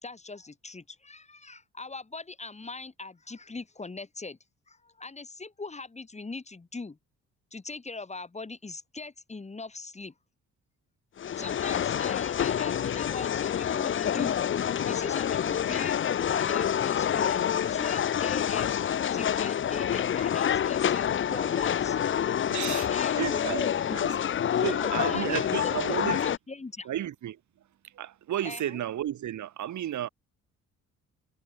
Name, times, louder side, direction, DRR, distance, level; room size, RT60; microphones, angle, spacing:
voice 1, 0.0-4.4 4.7-7.0 7.5-10.1 11.4-14.4 14.8-22.3 22.6-24.0 24.5-26.9 28.4-28.7, left 3 dB, 20° left, 3.4 m, -40 dB
sound 1, 11.2-26.4, left 9 dB, 40° left, 0.7 m, -27 dB
voice 2, 22.5-22.9 23.2-23.6 23.9-24.2 24.6-26.2 26.8-27.4 27.8-30.1, right 11 dB, 70° right, 4.8 m, -33 dB
cardioid pair, 90°, 30 cm